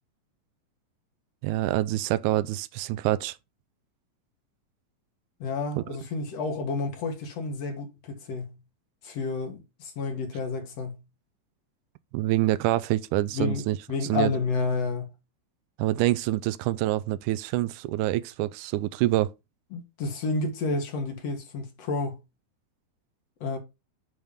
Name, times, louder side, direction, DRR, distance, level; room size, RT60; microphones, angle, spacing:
voice 1, 1.4-3.4 5.8-5.9 12.1-13.8 14.1-14.3 15.8-19.3, right 15 dB, 80° right, 1.8 m, -26 dB
voice 2, 5.4-8.5 9.0-11.0 13.3-15.1 19.7-22.2 23.4-23.6, left 4 dB, 50° left, 2.6 m, -30 dB
8.8 x 3.6 x 5.4 m
omnidirectional pair, 4.1 m